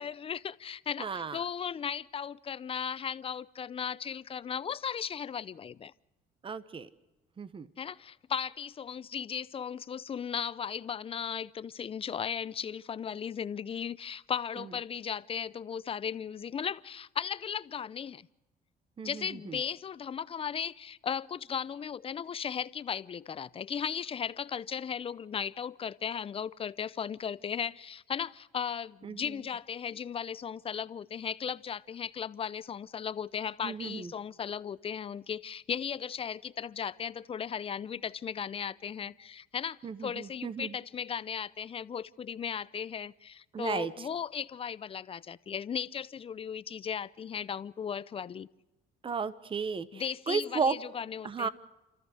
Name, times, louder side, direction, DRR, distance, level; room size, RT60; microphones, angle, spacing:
voice 1, 0.0-5.9 7.8-18.3 19.0-48.5 49.9-51.5, left 7 dB, 35° left, 0.6 m, -36 dB
voice 2, 1.0-1.4 6.4-6.9 7.4-7.7 19.0-19.6 29.0-29.3 33.6-34.1 39.8-40.8 43.5-44.1 49.0-50.8 51.2-51.5, right 5 dB, 30° right, 1.1 m, -34 dB
29.5 x 14.0 x 6.4 m
cardioid pair, 110°, 17 cm